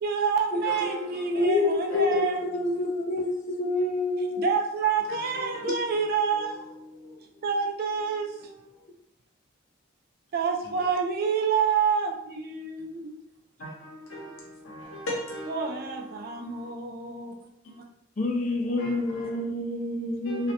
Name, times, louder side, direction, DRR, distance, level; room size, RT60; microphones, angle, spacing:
voice 1, 0.0-2.4 4.4-6.6 7.4-8.3 10.3-13.2 15.5-17.3, right 6 dB, 50° right, 0.3 m, -28 dB
voice 2, 0.6-2.2 5.1-5.7 6.3-7.4 8.4-8.7 10.6-10.9 13.6-16.7 17.6-17.8 18.8-19.3 20.2-20.5, left 1 dB, 85° left, 0.8 m, -40 dB
voice 3, 1.3-4.5 5.6-5.7 18.2-20.5, left 2 dB, 40° left, 0.4 m, -27 dB
2.3 x 2.0 x 2.7 m
head